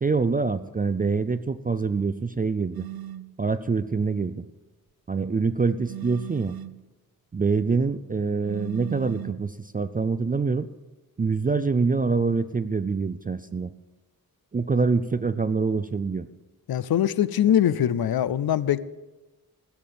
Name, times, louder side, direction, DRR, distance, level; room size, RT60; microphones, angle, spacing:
voice 1, 0.0-2.9 3.4-4.4 5.1-6.6 7.3-10.7 11.2-13.7 14.5-16.3, right 4 dB, 25° right, 12 dB, 0.3 m, -25 dB
sound 1, 2.7-3.3 5.9-6.8 8.4-9.5, right 13 dB, 80° right, 0.6 m, -37 dB
voice 2, 16.7-18.8, left 10 dB, 90° left, 17 dB, 0.6 m, -22 dB
16.0 x 7.1 x 7.6 m, 1.1 s
wide cardioid pair, 175°, 36 cm